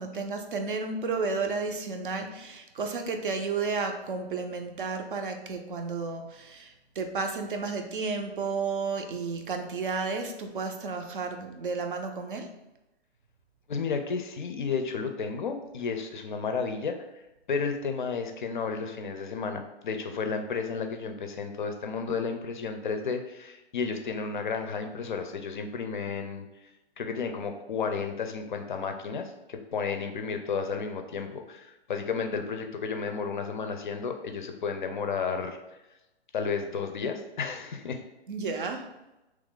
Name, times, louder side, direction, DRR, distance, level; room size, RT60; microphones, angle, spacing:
voice 1, 0.0-12.5 38.3-38.9, right 4 dB, 55° right, 5 dB, 0.5 m, -32 dB
voice 2, 13.7-17.0 17.5-26.5 27.0-35.6 36.3-38.0, left 5 dB, 50° left, 6 dB, 0.4 m, -32 dB
3.0 x 2.4 x 3.6 m, 0.97 s
hypercardioid pair, 160°, 33 cm